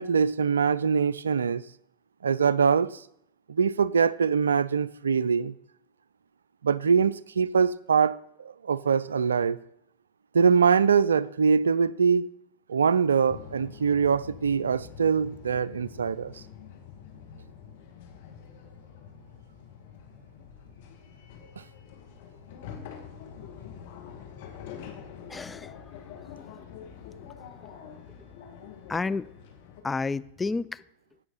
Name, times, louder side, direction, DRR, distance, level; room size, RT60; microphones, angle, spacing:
voice 1, 0.0-1.6 2.2-3.0 3.5-5.5 6.6-9.6 10.3-12.3 12.7-16.3, right 6 dB, 80° right, 0.3 m, -23 dB
sound 1, 13.3-29.8, left 7 dB, 60° left, 1.8 m, -46 dB
voice 2, 25.3-25.7 26.4-26.6 27.6-27.7 28.9-29.3 29.8-30.8, left 4 dB, 15° left, 0.3 m, -31 dB
16.5 x 5.6 x 4.1 m
figure-of-eight pair, 90°, 0 cm